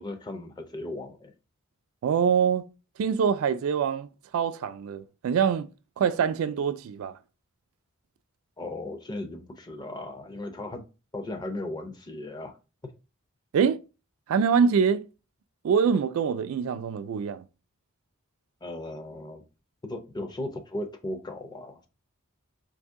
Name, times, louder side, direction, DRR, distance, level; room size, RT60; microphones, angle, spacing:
voice 1, 0.0-1.3 8.6-10.8 11.1-12.5 18.6-19.4 19.8-21.9, left 1 dB, 20° left, 0.5 m, -36 dB
voice 2, 2.0-2.7 3.0-4.1 4.3-5.7 6.0-7.1 13.5-13.8 14.3-15.1 15.6-17.4, right 6 dB, 70° right, 0.3 m, -24 dB
2.7 x 2.7 x 3.5 m
head